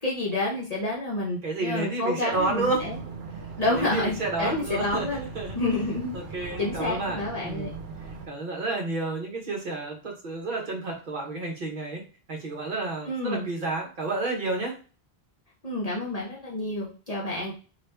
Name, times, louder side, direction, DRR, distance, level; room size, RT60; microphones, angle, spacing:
voice 1, 0.0-3.0 3.6-5.2 5.5-7.7 13.0-13.5 15.6-17.5, left 2 dB, 40° left, -4 dB, 0.8 m, -29 dB
voice 2, 1.4-2.9 3.7-5.6 6.1-7.8 8.3-12.0 12.3-14.7, right 3 dB, 55° right, 1 dB, 1.0 m, -30 dB
sound 1, 2.3-8.3, right 5 dB, 80° right, 0.9 m, -39 dB
2.8 x 2.5 x 3.3 m, 0.37 s
omnidirectional pair, 1.0 m